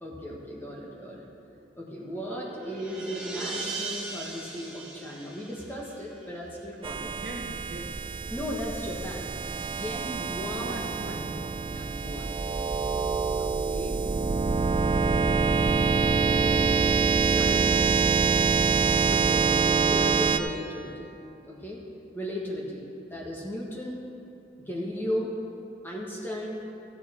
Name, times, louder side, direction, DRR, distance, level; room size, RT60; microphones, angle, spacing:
voice 1, 0.0-1.3 1.8-7.1 8.3-10.8 11.7-12.7 13.4-14.0 14.9-15.5 16.2-16.9 17.2-18.0 19.1-21.1 21.4-21.8 22.1-22.8 23.1-24.0 24.6-25.3 25.8-26.6, equal, 10° left, -4 dB, 1.5 m, -36 dB
sound 1, 2.0-6.5, right 3 dB, 5° right, 1.3 m, -39 dB
sound 2, 6.8-20.4, right 5 dB, 30° right, 0.3 m, -25 dB
voice 2, 6.8-8.0 10.5-11.9, right 1 dB, 60° right, 0 dB, 1.2 m, -41 dB
14.0 x 8.4 x 4.4 m, 2.6 s
head